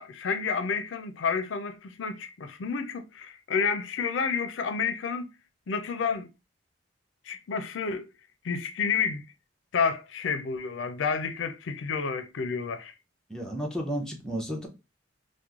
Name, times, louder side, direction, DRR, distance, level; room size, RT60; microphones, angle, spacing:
voice 1, 0.0-5.3 5.7-6.3 7.3-8.1 8.4-9.2 9.7-12.9, left 5 dB, 80° left, 0.4 m, -30 dB
voice 2, 13.3-14.7, equal, 5° left, 0.7 m, -32 dB
3.0 x 2.1 x 3.6 m
head